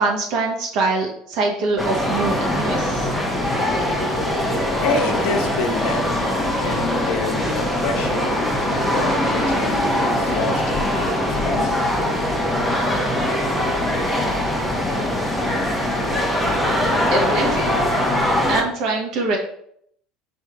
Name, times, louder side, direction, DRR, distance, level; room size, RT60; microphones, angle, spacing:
voice 1, 0.0-3.1 16.9-17.8 18.5-19.4, right 3 dB, 60° right, 0 dB, 0.9 m, -23 dB
sound 1, 1.8-18.6, left 1 dB, 5° left, 0.9 m, -22 dB
voice 2, 4.8-11.8, left 4 dB, 75° left, 4 dB, 0.8 m, -28 dB
3.6 x 2.6 x 4.6 m, 0.68 s
supercardioid pair, 105°, 0 cm